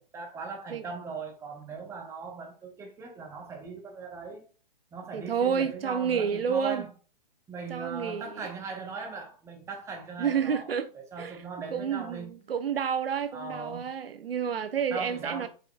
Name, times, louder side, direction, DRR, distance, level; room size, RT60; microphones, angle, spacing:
voice 1, 0.1-4.4 4.9-6.9 7.5-10.7 10.9-12.3 13.3-13.9 14.9-15.5, right 5 dB, 10° right, 0.8 m, -39 dB
voice 2, 5.1-6.8 7.7-8.5 10.2-10.9 11.2-11.4 11.7-15.5, right 7 dB, 80° right, 0.7 m, -29 dB
4.9 x 4.7 x 2.3 m
hypercardioid pair, 130°, 29 cm